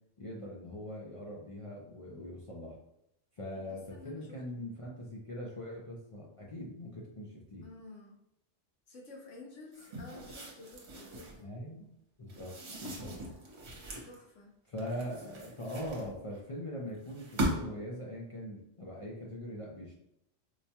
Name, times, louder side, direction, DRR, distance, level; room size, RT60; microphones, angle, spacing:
voice 1, 0.2-2.8 3.4-7.7 11.4-11.9 12.2-12.5 12.8-13.1 14.7-19.9, equal, 50° left, -4 dB, 0.4 m, -42 dB
voice 2, 3.6-4.6 7.6-8.2 8.9-11.5 14.0-14.6 15.2-15.5, left 3 dB, 80° left, -2 dB, 1.1 m, -52 dB
sound 1, 9.7-11.4 12.3-14.1 14.8-16.4 17.1-17.9, right 1 dB, 65° right, 1.1 m, -39 dB
4.6 x 2.2 x 2.8 m, 0.80 s
omnidirectional pair, 1.2 m